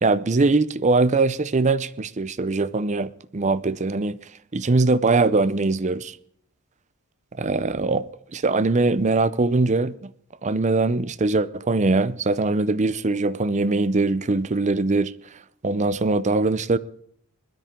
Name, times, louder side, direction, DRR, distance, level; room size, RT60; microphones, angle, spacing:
voice 1, 0.0-4.2 4.5-6.2 7.4-8.0 8.3-10.1 10.4-15.1 15.6-16.8, right 3 dB, 30° right, 0.6 m, -22 dB
21.0 x 13.0 x 3.7 m
head